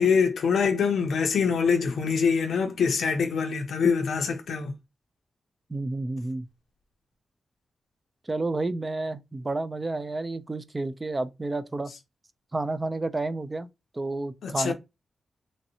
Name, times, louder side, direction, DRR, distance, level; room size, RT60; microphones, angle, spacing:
voice 1, 0.0-4.7 14.4-14.7, left 6 dB, 80° left, 0.4 m, -24 dB
voice 2, 5.7-6.5 8.3-11.9 12.5-14.7, right 2 dB, 30° right, 0.4 m, -30 dB
3.1 x 2.6 x 2.7 m
cardioid pair, 80°, 0 cm